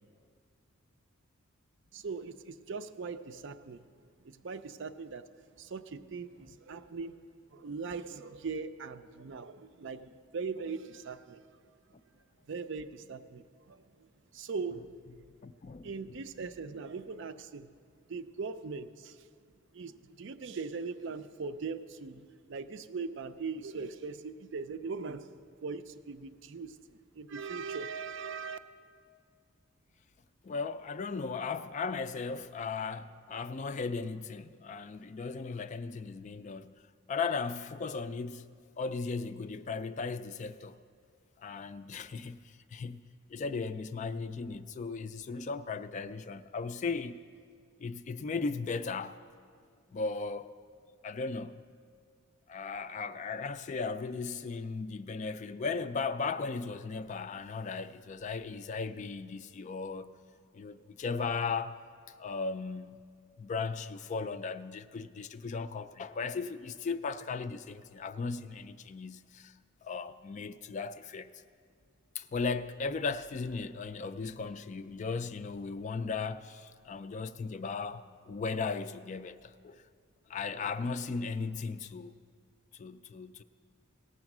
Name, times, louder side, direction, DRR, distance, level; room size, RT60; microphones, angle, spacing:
voice 1, 1.9-3.8 4.2-5.3 5.6-7.2 7.5-11.4 12.5-13.8 14.3-14.9 15.8-17.7 18.1-19.2 19.7-25.3 25.6-28.6, right 4 dB, 60° right, 0.5 m, -40 dB
voice 2, 15.4-16.2 30.4-36.7 37.1-38.5 38.8-40.8 41.4-43.0 43.3-47.2 47.8-49.2 49.9-50.5 51.0-51.6 52.5-60.1 60.5-61.8 62.2-63.0 63.4-69.5 69.8-71.3 72.2-79.8 80.3-82.1 82.7-83.4, left 4 dB, 35° left, 0.3 m, -36 dB
17.5 x 7.2 x 6.0 m
head